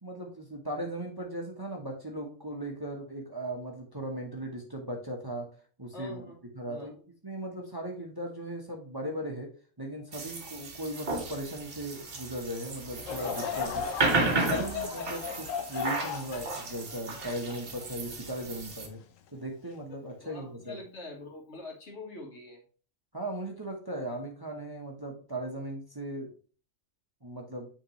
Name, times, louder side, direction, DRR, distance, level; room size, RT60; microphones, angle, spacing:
voice 1, 0.0-5.5 5.8-6.2 6.5-7.0 7.2-9.5 9.8-13.9 14.3-19.0 19.3-20.8 23.1-26.3 27.2-27.7, right 1 dB, 20° right, 0 dB, 1.0 m, -38 dB
voice 2, 5.9-6.4 6.7-7.0 20.2-22.6, left 2 dB, 60° left, 1 dB, 1.8 m, -44 dB
sound 1, 10.1-18.9, right 3 dB, 50° right, 1.3 m, -34 dB
Laughter / Crowd, 13.0-18.4 19.0-19.1 19.9-20.1, left 7 dB, 80° left, 1.1 m, -36 dB
8.6 x 3.7 x 3.0 m, 0.39 s
omnidirectional pair, 1.3 m